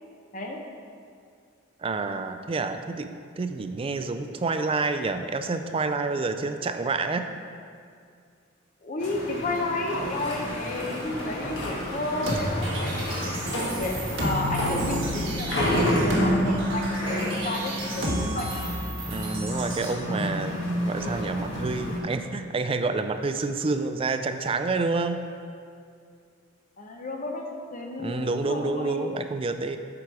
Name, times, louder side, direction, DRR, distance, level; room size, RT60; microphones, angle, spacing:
voice 1, 1.8-3.1 3.4-7.3 19.1-25.2 28.0-29.8, right 3 dB, 25° right, 8 dB, 0.3 m, -28 dB
voice 2, 8.8-13.3 13.7-18.5 26.8-29.1, left 2 dB, 40° left, 1 dB, 0.7 m, -32 dB
sound 1, 9.0-22.0, equal, 60° left, 1.5 m, -30 dB
sound 2, 12.2-19.9, equal, 65° right, 1.3 m, -30 dB
8.5 x 4.9 x 4.7 m, 2.3 s
head